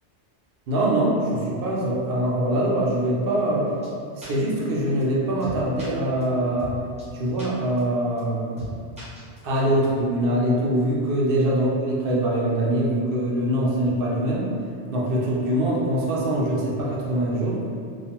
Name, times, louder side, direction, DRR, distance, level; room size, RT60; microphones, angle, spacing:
voice 1, 0.7-3.7 4.2-6.7 7.1-8.5 9.4-14.5 14.9-17.6, right 1 dB, 60° right, -5 dB, 0.7 m, -23 dB
sound 1, 3.8-3.9 4.2-4.3 4.6-4.7 5.0-5.1 5.4-5.9 6.2-6.3 6.6-6.7 7.0-7.1 7.4-7.5 7.8-7.9 8.2-8.3 8.6-8.7 9.0-9.6, right 2 dB, 10° right, 0.5 m, -38 dB
2.4 x 2.1 x 2.8 m, 2.3 s
omnidirectional pair, 1.2 m